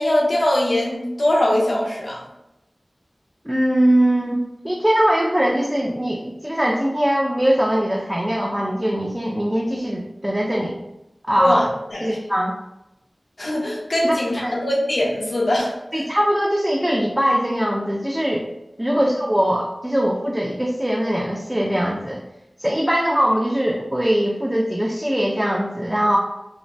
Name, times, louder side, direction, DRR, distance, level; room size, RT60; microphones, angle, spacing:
voice 1, 0.0-2.2 11.4-12.2 13.4-16.1 18.9-19.0, left 1 dB, 80° left, -3 dB, 0.6 m, -22 dB
voice 2, 3.5-10.8 11.3-11.6 12.0-12.5 14.0-14.6 15.9-18.5 18.8-22.2 22.6-26.2, equal, 15° right, -2 dB, 0.4 m, -21 dB
2.6 x 2.1 x 3.1 m, 0.92 s
wide cardioid pair, 55°, 0 cm